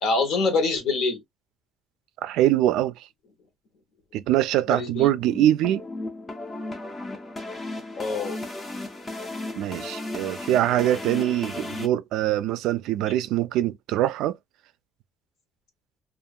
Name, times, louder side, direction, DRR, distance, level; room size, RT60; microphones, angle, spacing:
voice 1, 0.0-1.2 4.7-5.1 7.9-8.4, left 3 dB, 60° left, 0.9 m, -25 dB
voice 2, 2.2-2.9 4.1-5.8 9.5-14.4, right 13 dB, 80° right, 0.3 m, -23 dB
sound 1, 5.0-11.9, left 2 dB, 20° left, 0.5 m, -35 dB
2.8 x 2.4 x 2.3 m
cardioid pair, 160°, 0 cm